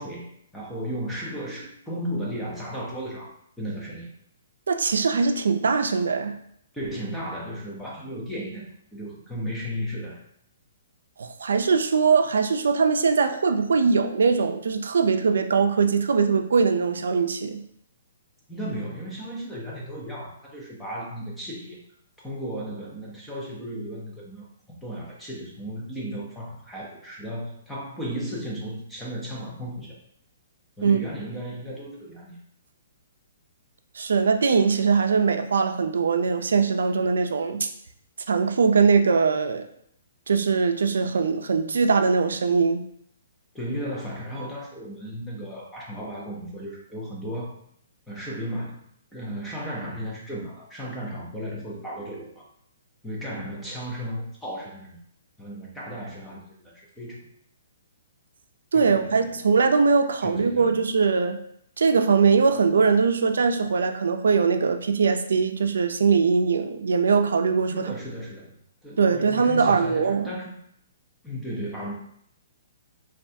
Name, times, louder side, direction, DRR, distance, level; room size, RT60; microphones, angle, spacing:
voice 1, 0.0-3.3 3.6-4.1 6.7-10.2 18.5-21.8 22.2-24.5 24.8-30.0 30.8-32.4 43.5-47.5 48.1-48.8 49.1-52.5 53.0-55.0 55.4-57.3 58.7-59.3 60.2-60.8 67.7-68.6 68.8-70.5 71.2-71.9, equal, 5° left, -4 dB, 0.4 m, -35 dB
voice 2, 4.7-6.4 11.2-17.6 30.8-31.0 34.0-37.7 38.3-39.7 40.3-42.8 58.7-61.4 61.8-67.9 69.0-70.3, right 5 dB, 90° right, 7 dB, 0.3 m, -21 dB
3.2 x 2.2 x 2.6 m, 0.70 s
hypercardioid pair, 175°, 0 cm